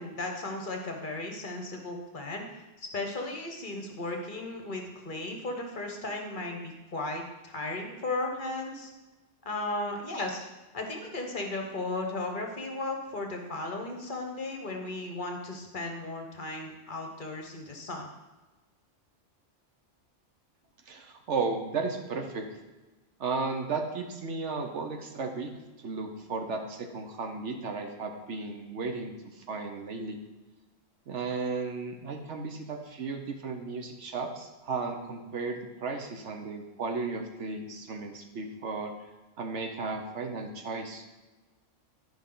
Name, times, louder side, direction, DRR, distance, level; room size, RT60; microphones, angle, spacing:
voice 1, 0.0-2.4 2.8-8.9 9.4-10.4 10.7-18.1, left 2 dB, 45° left, 2 dB, 1.1 m, -35 dB
voice 2, 20.9-22.5 23.2-25.5 25.8-30.2 31.1-39.0 39.4-41.0, right 4 dB, 70° right, 4 dB, 1.2 m, -34 dB
10.5 x 5.5 x 3.8 m, 1.2 s
omnidirectional pair, 1.3 m